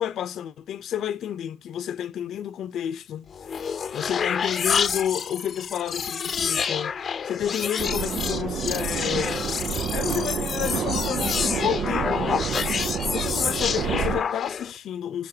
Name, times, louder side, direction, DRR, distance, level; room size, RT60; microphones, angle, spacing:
voice 1, 0.0-3.3 3.9-6.9 7.2-9.5 9.9-12.4 13.1-15.3, left 10 dB, 85° left, 0.7 m, -30 dB
sound 1, 3.3-14.8, left 6 dB, 45° left, 0.7 m, -28 dB
sound 2, 7.8-14.2, right 7 dB, 65° right, 0.6 m, -29 dB
6.7 x 6.6 x 2.8 m
wide cardioid pair, 165°, 0 cm